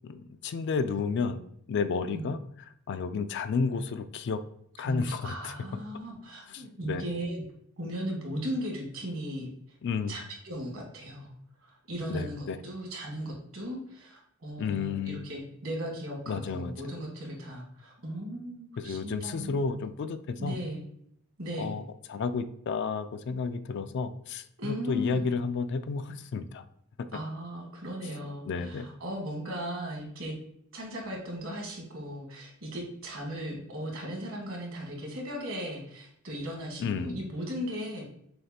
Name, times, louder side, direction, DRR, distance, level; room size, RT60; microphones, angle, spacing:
voice 1, 0.0-1.4 1.7-2.4 2.9-4.4 4.8-5.5 6.5-7.0 9.8-10.2 12.1-12.6 14.6-15.2 16.3-16.9 18.8-20.6 21.6-21.8 22.1-26.6 28.5-28.9 36.8-37.2, left 5 dB, 55° left, 11 dB, 0.3 m, -31 dB
voice 2, 4.8-7.4 7.8-9.8 10.1-11.3 11.6-19.6 20.4-20.8 21.4-21.7 24.6-25.3 27.1-30.3 30.7-38.1, equal, 70° right, -1 dB, 1.4 m, -37 dB
6.3 x 2.4 x 2.8 m, 0.69 s
head